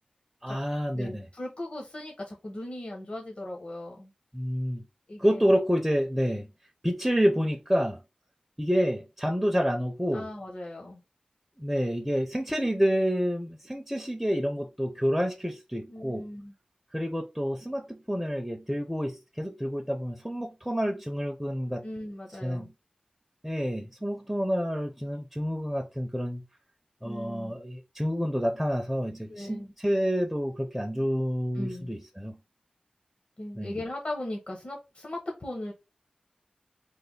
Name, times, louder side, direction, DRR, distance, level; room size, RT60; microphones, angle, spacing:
voice 1, 0.4-1.3 4.3-4.8 5.2-6.5 6.8-8.0 8.6-10.3 11.6-16.2 16.9-21.8 22.4-22.7 23.4-26.4 27.0-32.4 33.6-33.8, equal, 5° right, 0.5 m, -28 dB
voice 2, 0.9-4.1 5.1-5.5 10.1-11.0 15.9-16.5 21.8-22.7 27.0-27.6 29.3-29.7 31.5-32.0 33.4-35.7, left 1 dB, 50° left, 0.8 m, -38 dB
3.2 x 2.1 x 3.7 m
wide cardioid pair, 60°, 2 cm